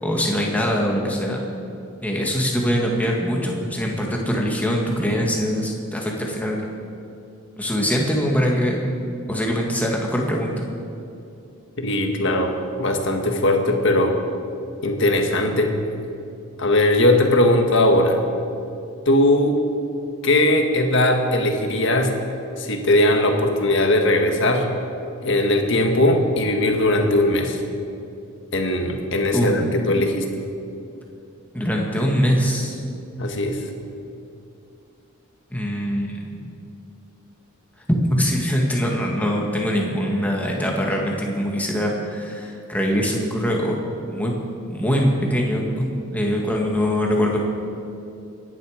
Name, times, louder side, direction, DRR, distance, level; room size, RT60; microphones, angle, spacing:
voice 1, 0.0-1.4 2.0-6.6 7.6-9.0 9.3-10.7 29.3-29.7 31.5-32.8 35.5-36.4 37.9-43.8 44.1-44.3 44.7-47.4, equal, 5° left, -1 dB, 1.9 m, -23 dB
voice 2, 11.8-14.2 14.8-15.7 16.6-18.2 19.1-19.6 20.2-22.1 22.6-24.7 25.2-27.6 28.5-30.2 33.2-33.6, left 1 dB, 55° left, 3 dB, 1.8 m, -19 dB
25.0 x 10.5 x 5.1 m, 2.6 s
head